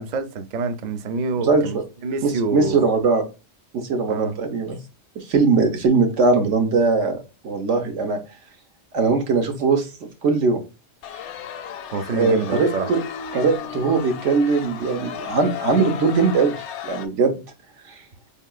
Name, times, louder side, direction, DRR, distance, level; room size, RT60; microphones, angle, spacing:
voice 1, 0.0-2.8 4.1-4.4 11.9-12.9, right 3 dB, 55° right, 0.5 m, -27 dB
voice 2, 1.4-1.8 2.2-3.2 3.7-4.8 5.1-8.2 8.9-10.6 12.1-13.0 13.3-17.4 17.9-18.0, right 4 dB, 90° right, 1.3 m, -20 dB
sound 1, 11.0-17.1, left 8 dB, 75° left, 0.9 m, -34 dB
4.5 x 3.5 x 2.3 m
omnidirectional pair, 1.2 m